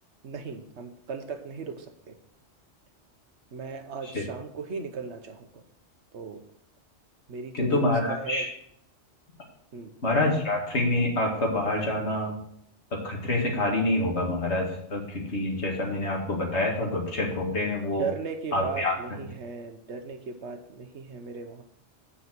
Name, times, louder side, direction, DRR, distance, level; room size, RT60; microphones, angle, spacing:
voice 1, 0.2-2.1 3.5-5.6 6.1-6.4 7.3-8.5 9.7-9.9 18.0-21.6, right 4 dB, 75° right, 7 dB, 1.3 m, -37 dB
voice 2, 7.5-8.5 10.0-12.3 12.9-18.1 18.5-19.0, left 2 dB, 70° left, -1 dB, 2.4 m, -27 dB
8.3 x 5.6 x 6.1 m, 0.68 s
omnidirectional pair, 1.2 m